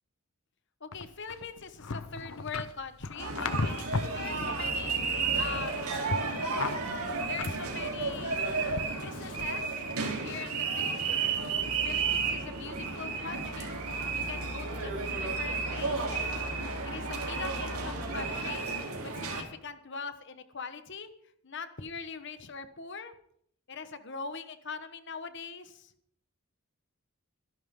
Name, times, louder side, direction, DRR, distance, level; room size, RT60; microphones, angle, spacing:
voice 1, 0.8-5.8 7.2-8.4 8.9-9.8 10.2-11.2 11.8-13.8 14.1-16.5 16.8-18.7 19.0-21.1 21.4-23.1 23.7-25.9, left 5 dB, 55° left, 10 dB, 1.2 m, -42 dB
sound 1, 0.9-4.2 4.5-5.7 6.0-8.3 8.7-9.7 10.2-10.4, left 3 dB, 70° left, 0.8 m, -37 dB
sound 2, 3.2-19.4, right 4 dB, 85° right, 3.4 m, -32 dB
24.5 x 11.5 x 3.8 m, 0.69 s
head